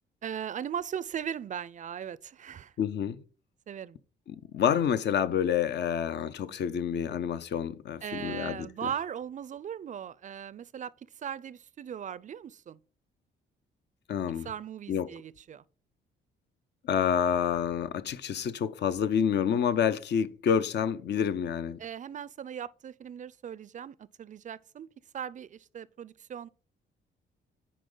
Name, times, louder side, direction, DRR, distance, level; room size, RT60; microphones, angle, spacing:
voice 1, 0.2-2.7 3.7-4.0 8.0-10.9 11.2-12.8 14.4-15.6 21.8-24.9 25.1-26.5, right 8 dB, 40° right, 0.4 m, -38 dB
voice 2, 2.8-3.2 4.3-8.7 14.1-14.5 14.9-15.1 16.9-21.8, left 8 dB, 60° left, 0.6 m, -28 dB
10.0 x 3.9 x 3.8 m
cardioid pair, 90°, 20 cm